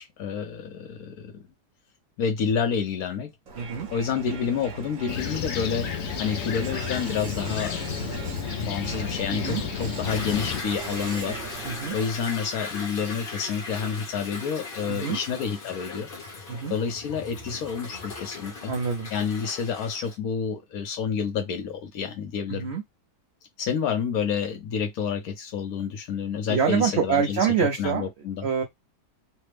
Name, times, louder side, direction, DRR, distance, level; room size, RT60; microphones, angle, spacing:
voice 1, 0.0-1.4 2.2-3.3 3.9-5.9 6.2-11.4 11.9-16.1 16.7-18.7 19.1-22.7 23.6-27.4 27.8-28.5, left 6 dB, 70° left, 1.1 m, -29 dB
Crowd, 3.5-12.3, right 5 dB, 60° right, 1.1 m, -39 dB
voice 2, 3.6-3.9 9.3-9.6 11.6-12.0 14.9-15.2 16.5-16.7 18.7-19.1 22.5-22.8 26.5-28.1 28.4-28.6, right 7 dB, 80° right, 0.5 m, -26 dB
Fixed-wing aircraft airplane, 5.1-10.6, left 9 dB, 85° left, 0.6 m, -32 dB
Toilet flush / Drip / Trickle dribble, 10.1-20.2, left 3 dB, 40° left, 0.9 m, -38 dB
3.3 x 2.0 x 3.2 m
omnidirectional pair, 1.8 m